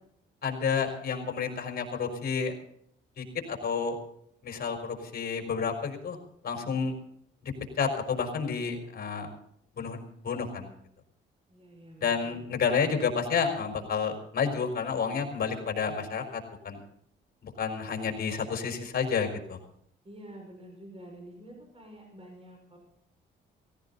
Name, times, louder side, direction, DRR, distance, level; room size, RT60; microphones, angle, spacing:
voice 1, 0.4-2.6 3.2-4.0 4.4-6.2 6.4-6.9 7.8-9.3 9.8-10.0 10.2-10.7 12.0-16.8 17.4-19.6, left 6 dB, 50° left, 5 dB, 4.6 m, -30 dB
voice 2, 11.5-12.6 20.0-22.8, right 1 dB, 30° right, 1 dB, 5.9 m, -48 dB
17.5 x 17.0 x 4.1 m, 0.69 s
cardioid pair, 90°, 20 cm